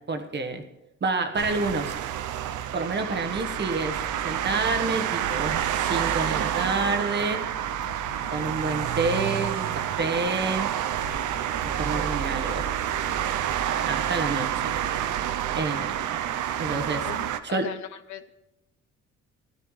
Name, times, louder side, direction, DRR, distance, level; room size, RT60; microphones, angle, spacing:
voice 1, 0.1-0.6 1.0-1.9 2.7-4.0 4.2-7.4 8.3-10.7 11.6-12.6 13.9-14.5 15.5-16.1 16.6-17.1 17.4-17.7, right 3 dB, 35° right, 6 dB, 1.3 m, -28 dB
sound 1, 1.4-17.4, right 10 dB, 80° right, 0.7 m, -28 dB
sound 2, 3.1-15.9, left 3 dB, 5° left, 1.2 m, -46 dB
voice 2, 17.0-18.3, left 9 dB, 75° left, 11 dB, 0.9 m, -38 dB
16.0 x 12.0 x 3.3 m, 0.93 s
cardioid pair, 90°, 30 cm